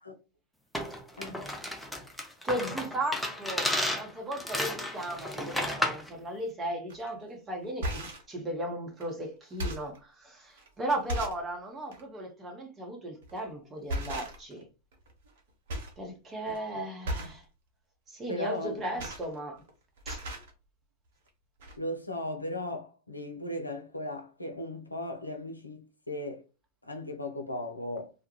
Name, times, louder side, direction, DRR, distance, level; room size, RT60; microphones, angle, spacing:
sound 1, 0.7-6.1, left 1 dB, 5° left, 0.5 m, -33 dB
voice 1, 2.4-14.7 16.0-17.4 18.1-19.6 20.1-20.2, right 1 dB, 20° right, 0.9 m, -36 dB
sound 2, 6.9-7.1 7.6-8.3 9.0-9.1 9.4-10.0 10.6-10.7 11.1-11.5 11.9-12.0 13.2-13.5 13.9-14.6 14.9-15.4 15.7-16.0 16.3-16.6 17.0-17.4 18.6-19.7 20.0-20.5 21.3-21.4 21.6-21.8, equal, 55° right, 0.6 m, -36 dB
voice 2, 18.3-18.8 21.8-26.4 26.8-28.1, left 1 dB, 85° left, 0.4 m, -37 dB
2.3 x 2.1 x 2.9 m
figure-of-eight pair, 90°, 0 cm